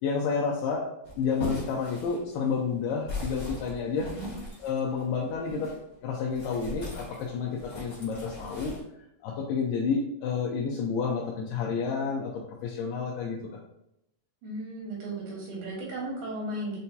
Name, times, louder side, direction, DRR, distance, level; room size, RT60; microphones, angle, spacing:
voice 1, 0.0-0.9 1.2-4.1 4.6-5.7 6.0-8.8 9.2-12.3 12.6-13.6, left 5 dB, 85° left, -3 dB, 2.2 m, -30 dB
sound 1, 1.0-5.8 6.3-8.8, left 2 dB, 45° left, 1.2 m, -40 dB
voice 2, 14.4-16.8, right 1 dB, 85° right, -4 dB, 3.2 m, -35 dB
6.6 x 2.2 x 2.7 m, 0.81 s
omnidirectional pair, 3.9 m